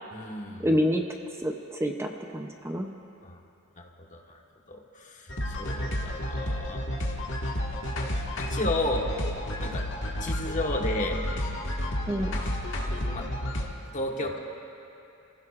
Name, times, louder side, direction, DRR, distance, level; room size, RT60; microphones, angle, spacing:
voice 1, 0.1-0.7 3.2-3.4 3.8-4.2 4.7-6.8 8.4-9.1 9.6-9.8 10.2-11.2 13.0-13.3 13.9-14.4, left 2 dB, 40° left, 1 dB, 1.4 m, -32 dB
voice 2, 0.6-1.0 1.4-2.9 12.1-12.3, equal, 15° right, 3 dB, 0.6 m, -27 dB
sound 1, 5.3-13.7, equal, 65° left, 1.7 m, -31 dB
29.0 x 15.5 x 2.5 m, 2.7 s
head